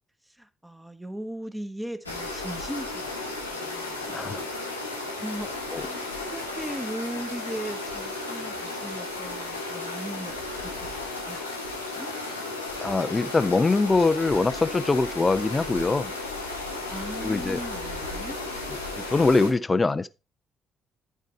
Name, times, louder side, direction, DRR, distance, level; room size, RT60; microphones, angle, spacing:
voice 1, 0.2-4.0 5.2-11.4 11.7-12.1 16.9-18.4, right 1 dB, 10° right, 1.2 m, -38 dB
sound 1, 2.0-19.5, left 2 dB, 90° left, 1.5 m, -34 dB
voice 2, 4.1-4.4 5.7-5.9 12.8-16.1 17.2-17.6 18.9-20.1, left 3 dB, 25° left, 0.6 m, -23 dB
11.5 x 4.7 x 4.6 m
figure-of-eight pair, 45°, 0 cm